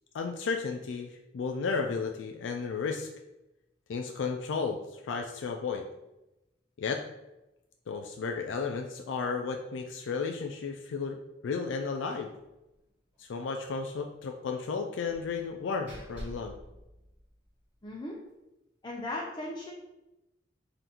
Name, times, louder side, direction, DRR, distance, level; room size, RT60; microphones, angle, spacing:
voice 1, 0.1-3.1 3.9-5.8 6.8-7.0 7.9-12.3 13.2-16.6, left 5 dB, 75° left, 3 dB, 0.4 m, -33 dB
Slam, 12.1-12.4 12.7-12.8 13.1-13.2 15.0-17.6, equal, 5° right, 1.4 m, -48 dB
voice 2, 17.8-18.2 18.8-19.7, left 1 dB, 25° left, -3 dB, 0.5 m, -37 dB
3.9 x 2.5 x 4.2 m, 0.95 s
head